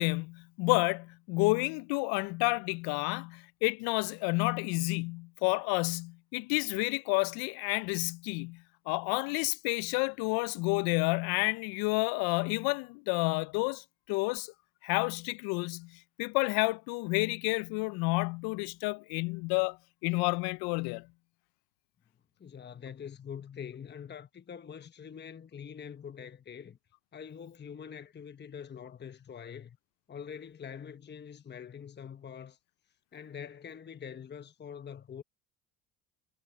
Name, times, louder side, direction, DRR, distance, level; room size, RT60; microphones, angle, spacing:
voice 1, 0.0-14.5 14.8-19.8 20.0-21.1, left 27 dB, 60° left, 0.5 m, -30 dB
voice 2, 22.4-26.8 27.1-29.8 30.1-32.6 33.1-35.2, left 7 dB, 25° left, 1.2 m, -44 dB
hypercardioid pair, 85°, 43 cm